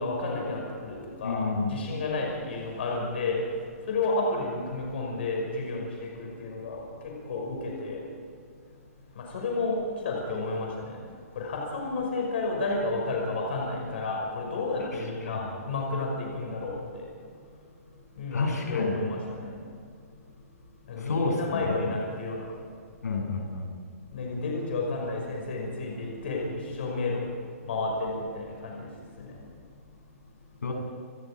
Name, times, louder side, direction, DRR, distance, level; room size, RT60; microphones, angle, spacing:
voice 1, 0.0-3.4 3.9-8.0 9.2-9.8 10.0-10.9 11.4-17.0 18.2-19.5 20.9-22.5 24.1-27.2 27.7-28.9 29.2-29.3, left 3 dB, 40° left, -1 dB, 5.7 m, -31 dB
voice 2, 1.2-1.8 14.8-15.4 18.3-19.0 21.0-21.8 23.0-23.7 30.6-30.7, left 4 dB, 90° left, 1 dB, 7.9 m, -30 dB
29.5 x 19.5 x 5.1 m, 2.2 s
hypercardioid pair, 180°, 9 cm